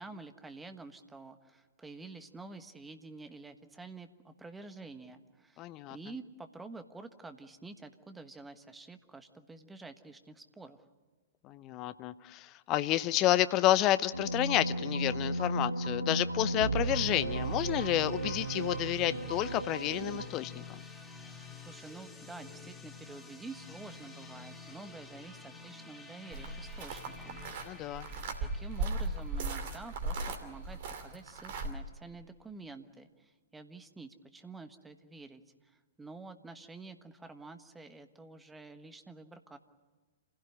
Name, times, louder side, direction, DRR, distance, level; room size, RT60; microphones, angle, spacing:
voice 1, 0.0-10.8 21.3-21.4 21.6-27.9 28.4-39.6, right 3 dB, 10° right, 9 dB, 1.3 m, -49 dB
voice 2, 5.6-6.0 11.5-20.8 27.7-28.1, left 14 dB, 30° left, 15 dB, 0.7 m, -30 dB
sound 1, 14.1-20.3, right 2 dB, 85° right, 1.5 m, -34 dB
sound 2, 16.8-30.6, left 4 dB, 10° left, 2.1 m, -50 dB
sound 3, 26.3-31.7, right 2 dB, 45° right, 2.7 m, -37 dB
27.5 x 16.5 x 9.9 m, 1.3 s
figure-of-eight pair, 110°, 0 cm